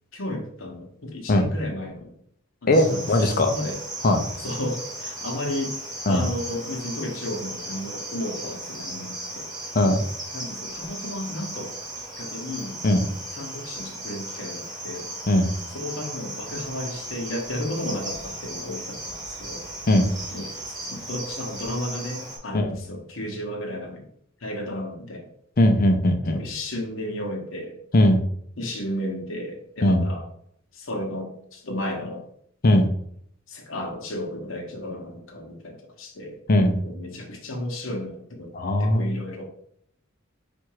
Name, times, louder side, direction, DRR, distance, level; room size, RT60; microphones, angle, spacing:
voice 1, 0.1-2.1 2.6-3.8 4.4-5.7 6.1-9.5 10.3-11.7 12.2-12.8 13.3-15.1 15.7-19.7 20.3-24.0 24.4-25.3 26.3-27.8 28.6-30.2 30.7-32.3 33.5-36.4 36.8-38.5 38.8-39.4, left 1 dB, 70° left, 2 dB, 1.0 m, -33 dB
voice 2, 2.7-3.5 4.0-4.3 6.1-6.3 9.7-10.0 12.8-13.0 15.3-15.5 19.9-20.1 22.5-22.8 25.6-26.4 27.9-28.2 29.8-30.1 32.6-32.9 36.5-36.8 38.5-39.1, left 1 dB, 45° left, 6 dB, 0.6 m, -19 dB
Cricket, 2.7-22.4, right 1 dB, 20° right, 1.5 m, -36 dB
4.4 x 2.5 x 4.7 m, 0.66 s
head